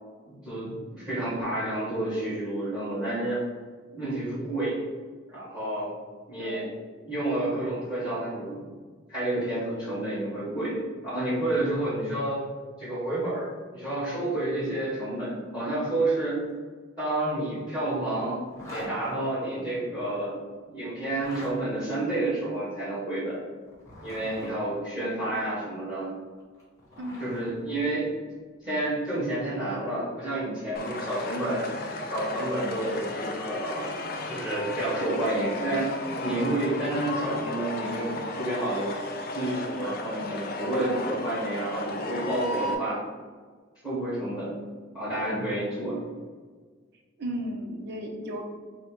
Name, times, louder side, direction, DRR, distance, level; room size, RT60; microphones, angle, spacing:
voice 1, 0.2-3.4 3.9-4.8 5.3-5.9 6.3-6.7 7.0-8.6 9.1-10.8 11.0-12.5 12.8-16.4 17.0-18.4 18.7-20.4 20.7-23.4 24.0-26.1 27.2-28.1 28.6-31.7 32.1-34.0 34.3-35.9 36.2-38.9 39.3-43.0 43.8-44.6 44.9-46.0, right 1 dB, 5° right, -10 dB, 1.4 m, -30 dB
voice 2, 6.4-6.7 27.0-27.8 47.2-48.4, equal, 50° right, 2 dB, 0.6 m, -35 dB
Zipper (clothing), 18.5-18.9 21.1-21.5 23.7-24.5 26.4-27.5, left 1 dB, 15° left, 1.1 m, -42 dB
sound 1, 30.7-42.7, left 2 dB, 45° left, 0.4 m, -34 dB
4.2 x 2.1 x 4.4 m, 1.5 s
head